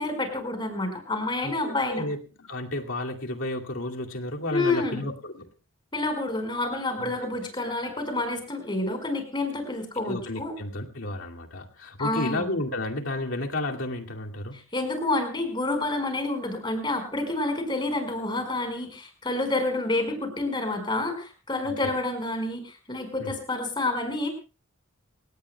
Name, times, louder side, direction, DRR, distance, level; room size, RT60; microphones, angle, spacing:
voice 1, 0.0-2.1 4.5-5.0 5.9-10.5 12.0-12.5 14.7-24.3, left 2 dB, 20° left, 5 dB, 4.9 m, -28 dB
voice 2, 1.4-5.5 7.0-7.1 10.1-14.6 23.2-23.3, left 1 dB, 70° left, 2 dB, 2.4 m, -32 dB
28.0 x 18.0 x 2.3 m, 0.32 s
head